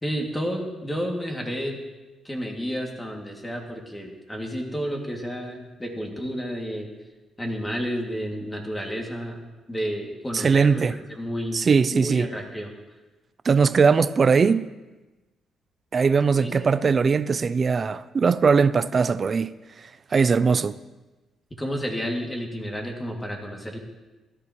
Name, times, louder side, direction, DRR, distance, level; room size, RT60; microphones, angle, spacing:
voice 1, 0.0-1.8 2.2-6.9 7.4-11.6 11.9-12.7 16.4-16.5 21.6-23.8, equal, 15° left, 2.5 m, -31 dB
voice 2, 10.3-10.9 11.5-12.3 13.4-14.7 15.9-19.5 20.1-20.8, right 5 dB, 40° right, 0.5 m, -20 dB
16.5 x 13.5 x 3.2 m
cardioid pair, 90°, 0 cm